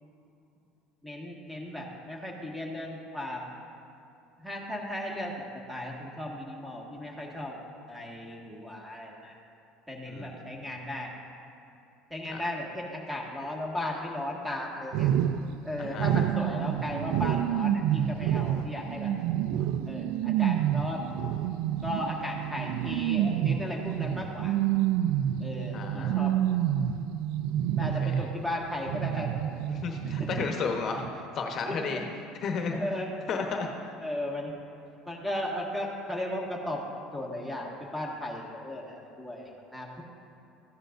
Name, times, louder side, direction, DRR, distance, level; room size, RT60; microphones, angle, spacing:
voice 1, 1.0-3.5 4.4-7.6 7.9-9.3 9.9-11.1 12.1-15.1 15.6-19.1 19.9-21.0 21.8-24.6 25.4-26.5 27.8-29.3 30.2-30.5 31.7-32.0 32.7-33.1 34.0-34.5 35.1-36.8 37.1-40.0, left 1 dB, 5° right, -2 dB, 1.7 m, -36 dB
sound 1, 14.9-28.5 28.9-30.7 31.0-31.1, right 10 dB, 75° right, 0.4 m, -28 dB
voice 2, 15.8-16.1 25.7-26.3 27.9-28.2 29.7-32.0 32.4-32.8 33.3-33.7, left 5 dB, 45° left, 3 dB, 1.0 m, -33 dB
14.5 x 10.0 x 2.6 m, 2.8 s
supercardioid pair, 120°, 0 cm